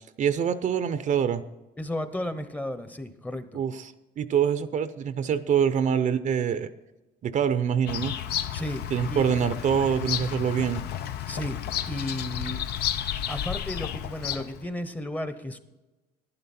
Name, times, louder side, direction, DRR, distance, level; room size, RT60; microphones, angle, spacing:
voice 1, 0.2-1.4 3.5-6.7 7.2-8.1 8.9-10.8, right 8 dB, 50° right, 13 dB, 0.6 m, -25 dB
voice 2, 1.8-3.6 8.5-9.3 11.3-12.6 13.3-15.6, left 1 dB, 10° left, 10 dB, 0.8 m, -34 dB
Bird vocalization bird call bird song, 7.9-14.6, left 10 dB, 75° left, 0.7 m, -32 dB
11.0 x 11.0 x 4.2 m, 1.1 s
cardioid pair, 110°, 17 cm